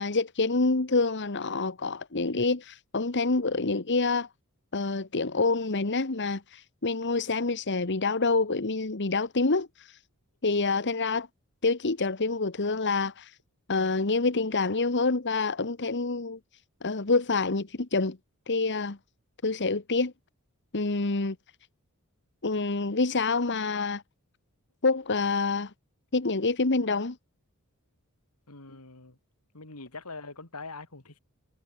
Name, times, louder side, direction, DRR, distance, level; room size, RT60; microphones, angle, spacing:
voice 1, 0.0-4.3 4.7-10.0 10.4-11.3 11.6-13.3 13.7-16.4 16.8-18.2 18.5-19.0 19.4-20.1 20.7-21.3 22.4-24.0 24.8-25.7 26.1-27.2, left 3 dB, 55° left, 1.4 m, -27 dB
voice 2, 28.5-29.2 29.5-31.2, left 3 dB, 90° left, 4.0 m, -43 dB
head